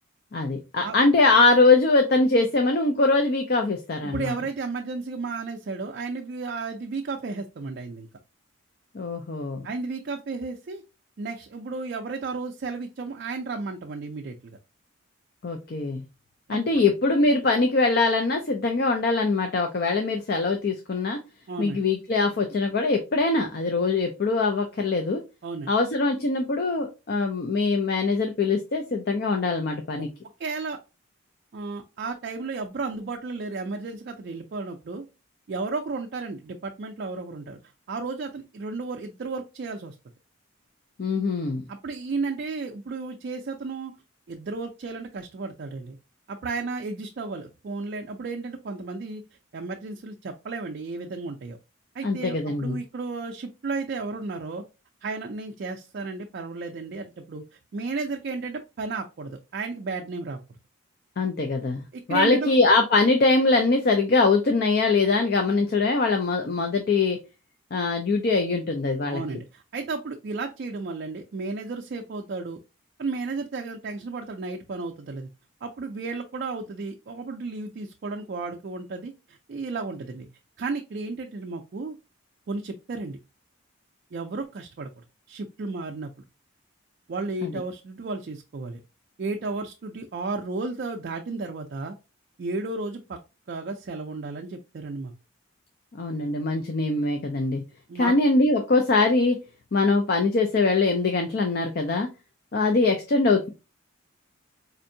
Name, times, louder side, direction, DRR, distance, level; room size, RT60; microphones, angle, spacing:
voice 1, 0.3-4.3 8.9-9.7 15.4-16.0 16.5-21.2 21.6-25.2 25.7-30.1 41.0-41.6 52.0-52.8 61.2-61.8 62.1-67.2 67.7-69.2 87.4-87.5 96.0-97.6 97.9-99.4 99.7-102.1 102.5-103.5, left 3 dB, 45° left, 4 dB, 0.4 m, -22 dB
voice 2, 4.0-8.1 9.6-10.8 11.2-14.6 16.5-16.6 21.5-21.8 25.4-25.7 30.4-30.8 31.5-35.0 35.5-37.6 37.9-40.0 41.7-43.9 44.3-46.0 46.3-49.2 49.5-51.6 51.9-54.6 55.0-57.4 57.7-60.4 61.9-62.5 69.0-72.6 73.0-75.3 75.6-80.3 80.6-82.0 82.5-83.2 84.1-86.1 87.1-88.8 89.2-92.0 92.4-93.2 93.5-95.1 97.9-98.1, right 3 dB, 45° right, 3 dB, 0.3 m, -33 dB
4.3 x 2.6 x 2.6 m, 0.29 s
head